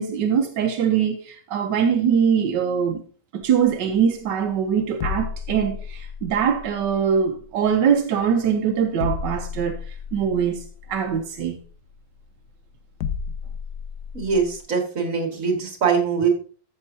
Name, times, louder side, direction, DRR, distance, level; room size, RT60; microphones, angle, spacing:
voice 1, 0.0-3.0 3.3-9.8 10.1-11.6, right 7 dB, 85° right, 1.4 m, -22 dB
sound 1, 3.4-14.6, left 7 dB, 70° left, 1.2 m, -34 dB
voice 2, 14.1-16.3, right 5 dB, 50° right, 2.4 m, -22 dB
13.5 x 6.5 x 2.7 m
omnidirectional pair, 1.9 m